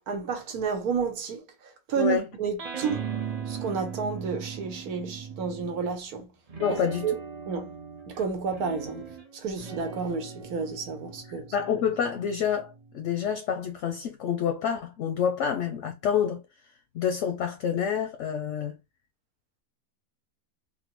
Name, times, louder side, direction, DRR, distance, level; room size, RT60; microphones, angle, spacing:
voice 1, 0.0-3.0 3.4-6.3 6.7-6.8 7.0-7.2 7.5-7.7 8.1-11.5, right 5 dB, 85° right, 1.3 m, -31 dB
voice 2, 2.0-2.3 6.6-7.1 11.5-16.4 16.9-18.8, left 8 dB, 65° left, 0.8 m, -28 dB
sound 1, 2.6-6.0 6.5-13.3, right 7 dB, 60° right, 0.3 m, -39 dB
3.6 x 2.1 x 2.9 m
omnidirectional pair, 1.6 m